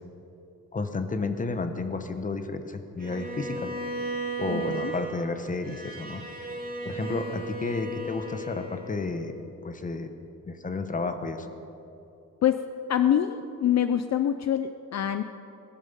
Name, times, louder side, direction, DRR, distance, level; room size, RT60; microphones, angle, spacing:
voice 1, 0.7-3.7 4.4-6.2 6.8-10.1 10.5-11.5, left 3 dB, 25° left, 8 dB, 1.0 m, -32 dB
Bowed string instrument, 3.0-9.2, right 2 dB, 30° right, 2.3 m, -36 dB
voice 2, 4.5-4.9 12.4-12.6 12.9-15.2, left 10 dB, 55° left, 10 dB, 0.5 m, -25 dB
19.0 x 13.0 x 5.4 m, 2.8 s
wide cardioid pair, 150°, 32 cm